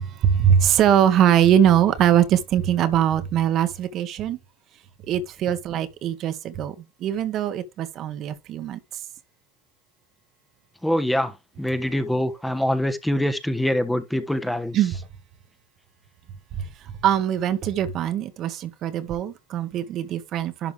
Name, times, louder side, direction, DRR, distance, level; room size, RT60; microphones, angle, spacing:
voice 1, 0.0-4.4 5.1-6.7 7.0-8.8 14.7-15.0 17.0-20.7, right 10 dB, 50° right, 1.4 m, -21 dB
voice 2, 10.8-14.8, equal, 5° left, 1.2 m, -24 dB
11.5 x 5.1 x 3.5 m
supercardioid pair, 95°, 0 cm